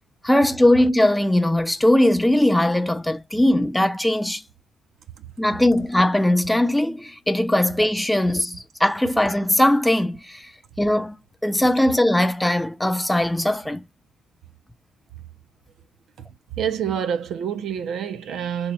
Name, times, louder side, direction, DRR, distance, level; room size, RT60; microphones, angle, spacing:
voice 1, 0.2-4.4 5.4-10.5 10.8-11.2 11.4-13.8, left 1 dB, 5° left, 0.5 m, -20 dB
voice 2, 16.6-18.7, right 8 dB, 75° right, 0.5 m, -27 dB
2.8 x 2.2 x 4.1 m
cardioid pair, 90°, 0 cm